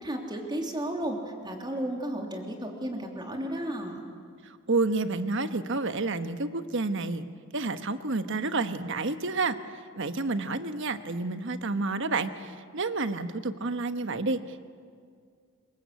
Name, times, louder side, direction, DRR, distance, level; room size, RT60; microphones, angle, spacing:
voice 1, 0.0-1.2 1.4-4.0, right 1 dB, 20° right, 1 dB, 3.3 m, -33 dB
voice 2, 4.4-7.3 7.5-9.6 10.0-14.6, right 3 dB, 60° right, 10 dB, 1.2 m, -29 dB
26.0 x 23.5 x 8.3 m, 2.1 s
head